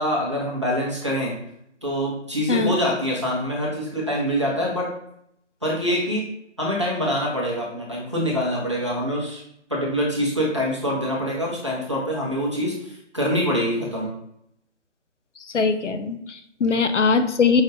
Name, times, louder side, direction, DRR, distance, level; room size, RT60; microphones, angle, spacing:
voice 1, 0.0-1.3 1.8-4.9 5.6-6.2 6.6-9.4 9.7-14.1, equal, 25° right, -5 dB, 0.7 m, -25 dB
voice 2, 15.5-17.6, left 5 dB, 70° left, 9 dB, 0.6 m, -21 dB
5.2 x 2.4 x 3.7 m, 0.74 s
figure-of-eight pair, 170°, 37 cm